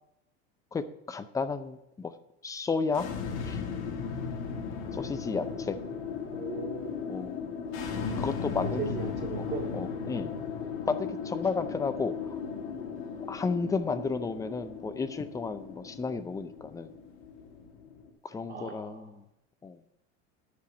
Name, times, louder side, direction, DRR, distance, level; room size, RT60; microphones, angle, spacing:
voice 1, 0.7-2.1 2.4-3.1 3.4-3.6 4.9-5.8 7.1-7.3 8.2-8.8 9.4-9.5 9.7-10.3 10.9-12.4 13.3-16.9 18.2-19.2 19.6-19.8, left 4 dB, 10° left, 10 dB, 0.5 m, -32 dB
sound 1, 2.9-18.1, left 5 dB, 75° left, 1.9 m, -36 dB
voice 2, 6.3-6.9 8.6-9.7 18.5-19.1, right 5 dB, 30° right, 1 dB, 2.2 m, -38 dB
10.0 x 4.9 x 7.2 m, 0.82 s
supercardioid pair, 135°, 34 cm